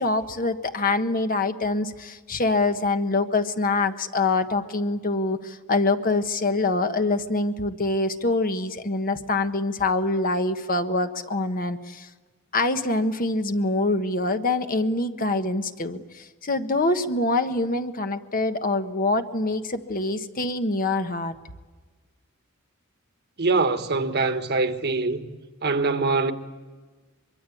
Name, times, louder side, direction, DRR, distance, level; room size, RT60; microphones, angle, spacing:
voice 1, 0.0-12.1 12.5-21.3, left 2 dB, 40° left, 1.4 m, -25 dB
voice 2, 23.4-25.3 25.6-26.3, right 3 dB, 50° right, 1.5 m, -23 dB
24.0 x 23.5 x 8.6 m
head